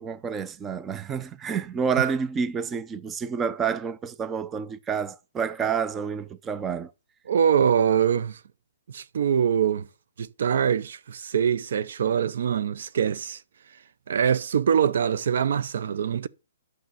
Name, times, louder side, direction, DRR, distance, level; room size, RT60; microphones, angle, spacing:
voice 1, 0.0-6.9, right 6 dB, 15° right, 0.6 m, -29 dB
voice 2, 7.3-8.4 8.9-9.9 10.2-13.4 14.1-16.3, right 8 dB, 65° right, 0.6 m, -23 dB
9.4 x 6.5 x 6.7 m
hypercardioid pair, 145°, 0 cm